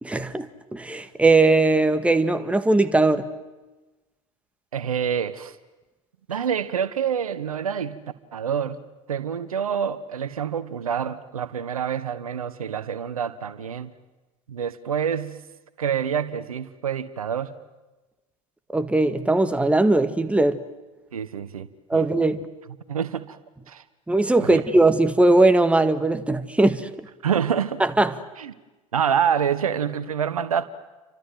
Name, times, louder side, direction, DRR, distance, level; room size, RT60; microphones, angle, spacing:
voice 1, 0.0-3.3 18.7-20.6 21.9-22.4 24.1-27.1 27.8-28.2, right 2 dB, 5° right, 1.8 m, -19 dB
voice 2, 4.7-5.5 6.3-8.0 8.3-8.8 9.1-13.9 14.5-15.4 15.8-17.5 21.1-22.1 22.9-23.4 23.7-23.8 24.4-24.6 27.2-27.8 28.4-28.5 28.9-30.6, right 8 dB, 80° right, 1.3 m, -27 dB
29.5 x 25.5 x 7.8 m
figure-of-eight pair, 75°, 18 cm